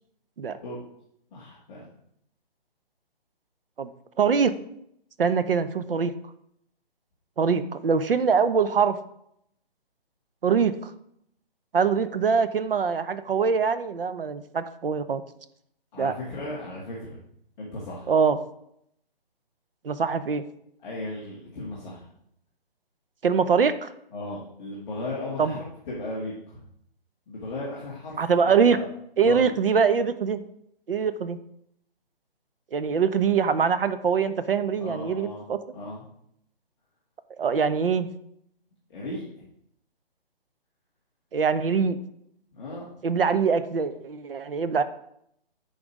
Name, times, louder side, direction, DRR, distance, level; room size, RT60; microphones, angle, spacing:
voice 1, 1.3-1.8 15.9-17.2 17.6-18.1 20.8-22.0 24.1-25.6 25.9-26.6 27.3-28.2 28.7-28.9 29.2-29.5 34.8-35.4 35.7-36.0 38.9-39.2 42.5-42.9, left 2 dB, 5° left, -11 dB, 0.4 m, -36 dB
voice 2, 4.2-4.5 5.2-6.1 7.4-9.0 10.4-10.9 11.7-15.2 16.0-16.1 18.1-18.4 19.8-20.4 23.2-23.9 25.4-25.6 28.2-28.8 29.2-30.4 30.9-31.4 32.7-35.6 37.4-38.1 41.3-42.0 43.0-44.8, right 6 dB, 65° right, 12 dB, 0.8 m, -23 dB
10.5 x 4.0 x 4.8 m, 0.74 s
figure-of-eight pair, 140°, 31 cm